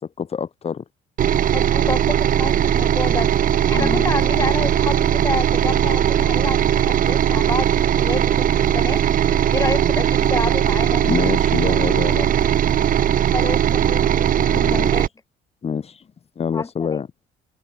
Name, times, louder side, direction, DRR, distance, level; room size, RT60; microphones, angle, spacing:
voice 1, 0.0-0.8 3.7-4.1 11.0-12.5 14.5-14.9 15.6-16.1 16.4-17.1, left 6 dB, 35° left, 3.6 m, -26 dB
sound 1, 1.2-15.1, right 10 dB, 55° right, 4.2 m, -19 dB
voice 2, 1.5-11.1 13.3-15.1 16.5-17.0, left 3 dB, 20° left, 7.9 m, -29 dB
cardioid pair, 110°, 17 cm